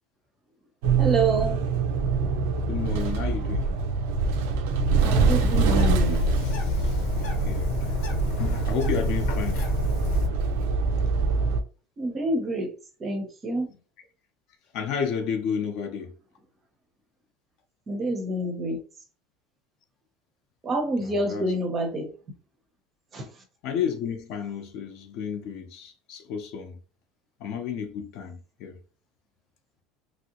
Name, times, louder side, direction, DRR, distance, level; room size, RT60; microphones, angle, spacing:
sound 1, 0.8-11.6, right 4 dB, 90° right, 0.5 m, -25 dB
voice 1, 1.0-1.6 5.0-6.2 12.0-12.7 13.0-13.7 17.9-18.8 20.6-22.1 23.1-23.3, right 2 dB, 20° right, 0.6 m, -27 dB
voice 2, 2.7-3.7 7.4-7.8 8.6-9.7 14.7-16.2 21.0-21.5 23.6-26.8 27.4-28.8, left 7 dB, 45° left, 0.5 m, -31 dB
Bird, 5.0-10.3, left 1 dB, 85° left, 0.9 m, -27 dB
3.0 x 2.7 x 2.8 m
cardioid pair, 180°, 0 cm